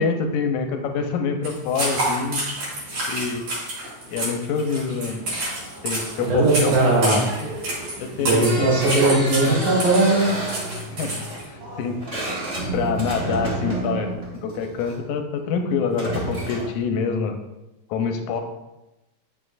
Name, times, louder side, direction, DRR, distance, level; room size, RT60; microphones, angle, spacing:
voice 1, 0.0-2.4 3.1-3.4 4.1-5.3 5.8-7.5 8.0-8.8 9.1-9.2 9.4-9.6 10.9-12.0 12.7-14.2 14.4-17.4 17.9-18.4, left 5 dB, 90° left, 5 dB, 2.1 m, -26 dB
sound 1, 1.4-11.4, right 1 dB, 65° right, 3.5 m, -29 dB
sound 2, 5.2-12.6, right 1 dB, 45° right, 1.5 m, -40 dB
voice 2, 6.2-7.2 8.2-10.3, right 2 dB, 85° right, -4 dB, 3.2 m, -19 dB
sound 3, 8.4-15.0 15.8-16.8, right 1 dB, 25° right, 1.5 m, -30 dB
9.1 x 6.4 x 2.5 m, 0.98 s
omnidirectional pair, 3.4 m